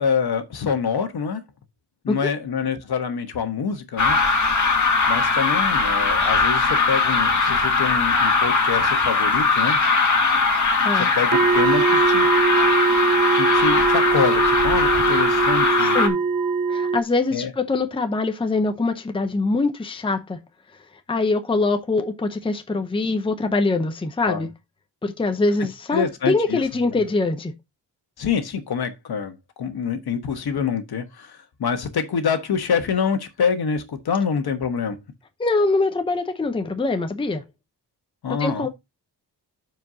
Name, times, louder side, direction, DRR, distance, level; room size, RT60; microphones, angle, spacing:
voice 1, 0.0-1.4 2.0-4.2 5.1-9.8 10.9-12.3 13.3-16.0 17.3-17.5 24.2-24.4 25.9-26.6 28.2-35.0 38.2-38.7, left 6 dB, 65° left, 1.3 m, -26 dB
sound 1, 4.0-16.1, left 4 dB, 45° left, 1.7 m, -20 dB
sound 2, 11.3-17.0, right 5 dB, 50° right, 0.7 m, -21 dB
voice 2, 15.8-16.2 16.7-20.4 21.1-24.5 25.0-27.5 35.4-37.4 38.4-38.7, left 3 dB, 15° left, 0.7 m, -23 dB
12.5 x 4.7 x 2.7 m
wide cardioid pair, 175°, 41 cm